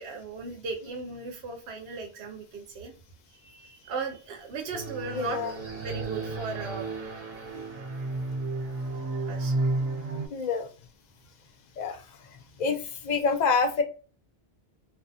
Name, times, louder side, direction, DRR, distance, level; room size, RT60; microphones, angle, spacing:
voice 1, 0.0-2.9 3.4-6.9 9.2-9.5, right 4 dB, 90° right, 4 dB, 0.9 m, -37 dB
sound 1, 4.7-10.3, right 3 dB, 60° right, 0.9 m, -32 dB
voice 2, 5.1-5.5 10.3-10.7 11.8-12.0 12.6-12.8 13.0-13.8, left 4 dB, 55° left, 6 dB, 0.6 m, -26 dB
2.5 x 2.5 x 2.4 m, 0.36 s
omnidirectional pair, 1.1 m